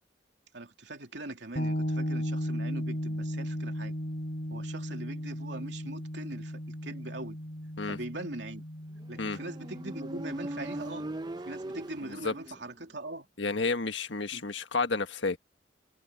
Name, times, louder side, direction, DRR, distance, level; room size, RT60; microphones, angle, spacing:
voice 1, 0.5-3.9 4.5-7.4 7.9-8.6 9.1-11.1 11.4-13.3 14.3-14.4, right 2 dB, 80° right, 3.1 m, -41 dB
sound 1, 1.6-11.2, equal, 55° left, 3.8 m, -36 dB
Motorcycle, 9.1-12.8, right 1 dB, 25° right, 0.7 m, -39 dB
voice 2, 13.4-15.4, left 3 dB, 90° left, 1.5 m, -30 dB
head